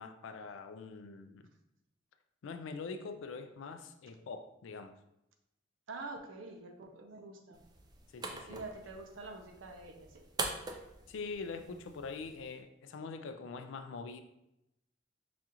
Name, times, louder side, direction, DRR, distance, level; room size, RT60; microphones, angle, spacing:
voice 1, 0.0-1.5 2.4-4.9 8.1-8.6 11.1-14.2, left 4 dB, 80° left, 8 dB, 0.3 m, -44 dB
voice 2, 5.9-7.6 8.5-10.2, right 3 dB, 85° right, 4 dB, 0.6 m, -46 dB
sound 1, 7.5-12.6, right 3 dB, 20° right, 0.3 m, -44 dB
4.9 x 2.4 x 2.9 m, 0.86 s
head